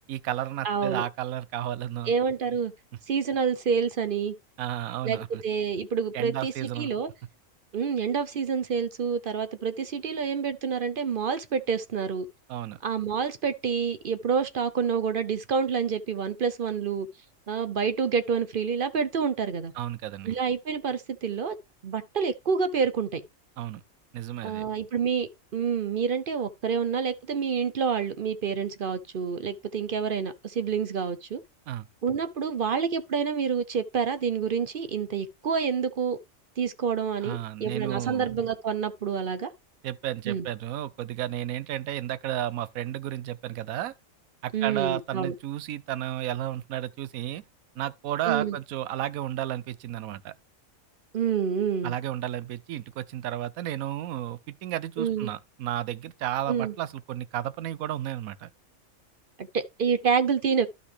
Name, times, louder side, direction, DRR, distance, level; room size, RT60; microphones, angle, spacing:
voice 1, 0.1-2.1 4.6-5.4 6.1-6.9 12.5-12.8 19.8-20.3 23.6-23.8 24.1-24.6 31.7-31.9 37.2-38.3 39.8-43.9 44.4-47.4 47.8-50.3 51.8-58.5, right 12 dB, 85° right, 1.1 m, -32 dB
voice 2, 0.6-1.0 2.1-2.7 3.1-4.3 5.0-7.1 7.7-12.3 12.8-17.1 17.5-19.7 20.2-21.6 21.8-23.2 24.4-31.4 32.0-36.2 36.6-39.5 40.3-40.5 44.5-45.3 48.3-48.6 51.1-52.0 55.0-55.3 56.5-56.7 59.4-60.7, right 6 dB, 50° right, 0.7 m, -28 dB
12.0 x 5.4 x 3.3 m
omnidirectional pair, 1.4 m